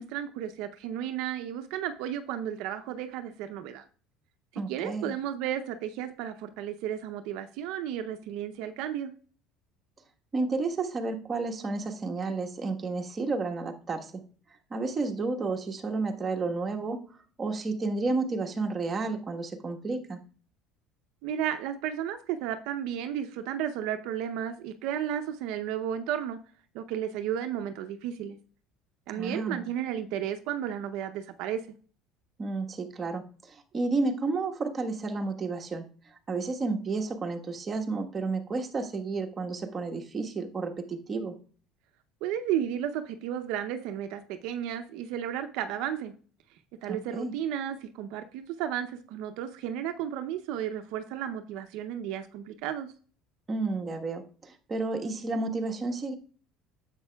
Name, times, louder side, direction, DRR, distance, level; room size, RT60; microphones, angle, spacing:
voice 1, 0.0-3.8 4.5-9.1 21.2-26.4 26.7-28.4 29.1-31.6 42.2-46.1 46.8-52.9, right 10 dB, 75° right, 8 dB, 0.7 m, -33 dB
voice 2, 4.6-5.2 10.3-14.2 14.7-17.0 17.4-20.2 29.1-29.6 32.4-35.9 36.3-41.4 46.9-47.3 53.5-56.1, right 3 dB, 25° right, 2 dB, 1.3 m, -31 dB
10.0 x 7.5 x 2.3 m, 0.42 s
supercardioid pair, 115°, 0 cm